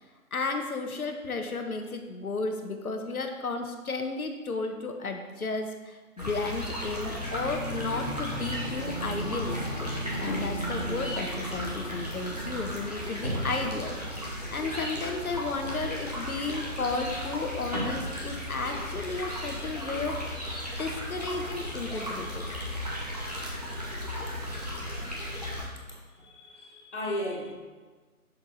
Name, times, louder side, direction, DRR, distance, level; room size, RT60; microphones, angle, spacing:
voice 1, 0.3-9.9 10.2-20.2 20.8-22.5, left 3 dB, 70° left, 5 dB, 0.9 m, -33 dB
sound 1, 6.2-25.7, equal, 25° right, 0.8 m, -35 dB
sound 2, 7.1-17.1, right 1 dB, 10° left, 1.3 m, -38 dB
voice 2, 25.9-27.5, left 1 dB, 50° left, -2 dB, 1.3 m, -36 dB
6.5 x 3.5 x 4.1 m, 1.4 s
figure-of-eight pair, 165°, 45 cm